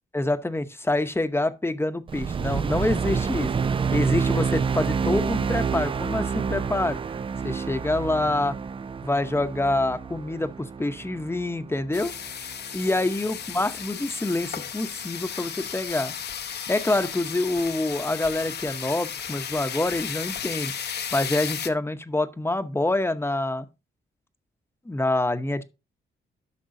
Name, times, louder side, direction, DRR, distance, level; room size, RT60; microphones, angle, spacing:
voice 1, 0.1-3.5 3.9-7.0 7.4-8.6 9.0-12.1 12.7-16.2 16.7-20.7 21.1-23.7 24.9-25.6, left 2 dB, 15° left, 0.9 m, -26 dB
sound 1, 2.1-12.6, right 6 dB, 30° right, 0.4 m, -28 dB
sound 2, 11.9-21.7, left 8 dB, 65° left, 0.9 m, -34 dB
12.5 x 6.0 x 2.7 m
cardioid pair, 100°, 19 cm